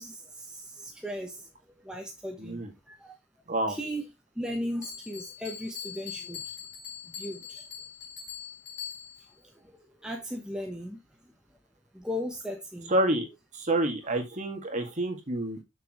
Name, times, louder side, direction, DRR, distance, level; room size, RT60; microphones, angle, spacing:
voice 1, 0.0-1.5 1.8-3.2 3.7-4.1 4.4-6.5 7.1-7.6 9.6-11.0 11.9-12.9, equal, 5° right, 1.0 m, -37 dB
Bell, 4.8-9.3, left 8 dB, 55° left, 4.2 m, -42 dB
voice 2, 12.9-13.3 13.5-15.6, right 1 dB, 35° right, 1.9 m, -28 dB
6.9 x 6.7 x 3.0 m
head